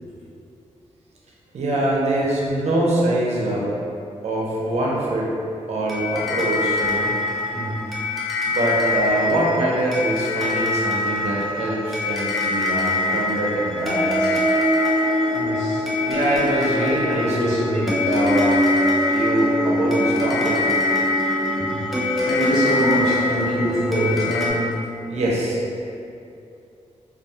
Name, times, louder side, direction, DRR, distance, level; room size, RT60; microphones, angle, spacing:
voice 1, 1.5-3.7 4.2-5.3 5.7-7.1 8.5-14.4 16.0-17.4 17.7-18.6 19.1-20.7 25.1-25.6, right 1 dB, 65° right, -4 dB, 0.6 m, -23 dB
sound 1, 5.9-24.5, left 1 dB, ahead, 0.5 m, -23 dB
voice 2, 7.5-8.0 14.6-16.1 17.2-18.1 21.5-25.1, equal, 75° left, -10 dB, 1.0 m, -25 dB
2.3 x 2.2 x 2.7 m, 2.6 s
cardioid pair, 90°, 12 cm